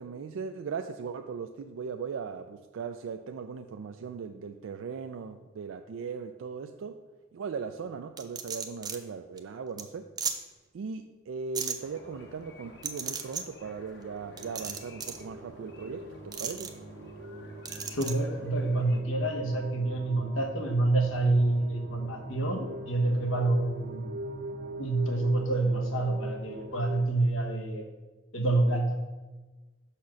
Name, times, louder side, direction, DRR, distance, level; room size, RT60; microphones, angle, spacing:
voice 1, 0.0-7.0 7.3-10.1 10.7-16.7, right 5 dB, 85° right, 7 dB, 0.3 m, -38 dB
sound 1, 8.2-9.0 9.4-9.5 9.8-9.9 10.2-10.3 11.5-11.7 12.8-13.4 14.4-15.2 16.3-16.7 17.6-18.1, right 6 dB, 20° right, 0.4 m, -34 dB
sound 2, 11.8-19.0, left 2 dB, 60° left, 1.0 m, -52 dB
sound 3, 14.1-27.1, right 1 dB, 55° right, 0.7 m, -43 dB
voice 2, 17.9-24.1 24.8-27.8 28.3-29.0, right 2 dB, 90° left, 2 dB, 1.1 m, -27 dB
5.9 x 4.2 x 6.2 m, 1.2 s
head